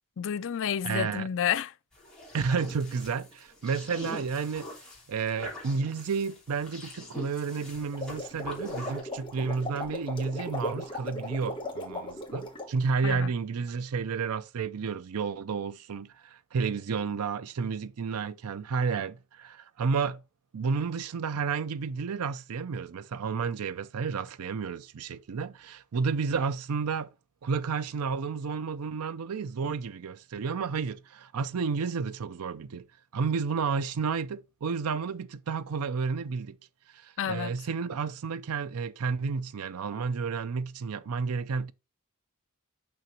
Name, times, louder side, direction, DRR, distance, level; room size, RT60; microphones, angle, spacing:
voice 1, 0.2-1.7 13.0-13.3 37.2-37.5, left 8 dB, 60° left, 0.4 m, -30 dB
voice 2, 0.8-1.3 2.3-4.7 5.1-20.2 20.5-27.1 27.4-32.9 33.1-36.6 36.9-41.7, right 5 dB, 75° right, 0.5 m, -31 dB
sound 1, 1.9-9.0, left 1 dB, 5° left, 3.0 m, -43 dB
sound 2, 7.8-12.7, left 1 dB, 25° left, 1.5 m, -37 dB
6.2 x 5.9 x 2.8 m
head